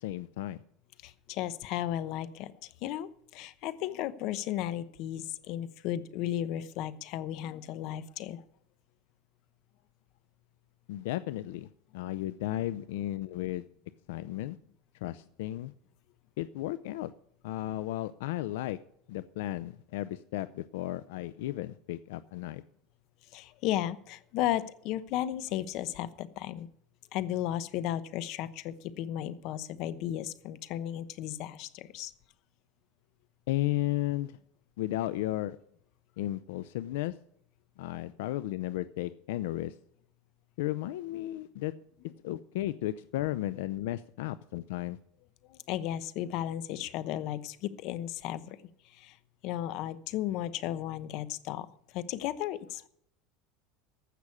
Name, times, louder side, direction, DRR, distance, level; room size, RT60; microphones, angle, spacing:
voice 1, 0.0-0.6 10.9-13.6 14.1-14.6 15.0-15.7 16.4-17.1 17.4-18.8 19.1-22.6 33.5-34.4 34.8-35.6 36.2-37.1 37.8-39.7 40.6-41.7 42.2-45.0, left 15 dB, 85° left, 15 dB, 0.5 m, -34 dB
voice 2, 1.0-2.5 2.8-8.4 23.3-26.7 27.1-32.1 45.7-48.4 49.0-49.1 49.4-51.7 51.9-52.9, left 12 dB, 55° left, 15 dB, 0.9 m, -34 dB
15.0 x 6.2 x 8.4 m, 0.69 s
supercardioid pair, 140°, 0 cm